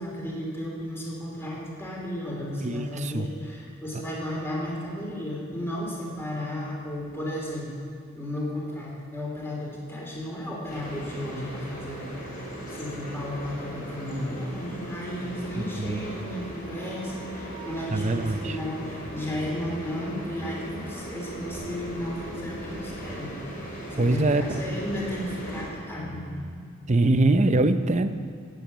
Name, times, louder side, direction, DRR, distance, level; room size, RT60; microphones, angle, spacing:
voice 1, 0.0-7.7 8.1-12.1 12.7-23.6 23.9-26.6, left 1 dB, 10° left, -3 dB, 3.1 m, -34 dB
voice 2, 2.6-3.3 15.6-16.1 17.9-18.6 24.0-24.5 26.9-28.1, right 2 dB, 30° right, 10 dB, 0.6 m, -23 dB
sound 1, 10.7-25.7, right 1 dB, 40° left, 4.2 m, -38 dB
17.0 x 7.9 x 8.4 m, 2.4 s
head